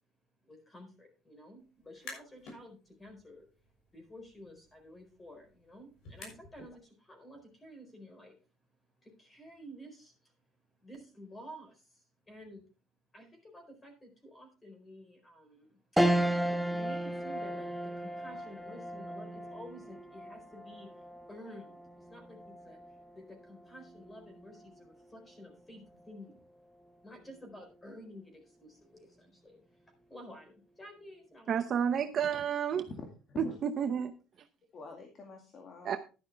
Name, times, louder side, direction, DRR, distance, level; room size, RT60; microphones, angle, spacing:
voice 1, 0.4-3.5 3.9-8.4 9.0-10.3 10.7-12.6 13.1-16.2 16.7-22.8 23.1-26.4 27.0-31.6, equal, 15° left, 4.3 m, -52 dB
sound 1, 1.8-2.6 3.0-6.8, left 3 dB, 65° left, 6.2 m, -52 dB
sound 2, 16.0-25.6 26.0-26.1 27.5-27.9, right 1 dB, ahead, 0.6 m, -35 dB
voice 2, 31.5-32.9 33.4-34.1 35.8-36.0, right 8 dB, 40° right, 0.8 m, -30 dB
voice 3, 32.8-33.5 34.7-36.0, left 4 dB, 35° left, 2.1 m, -45 dB
11.5 x 10.5 x 3.4 m
cardioid pair, 140°, 0 cm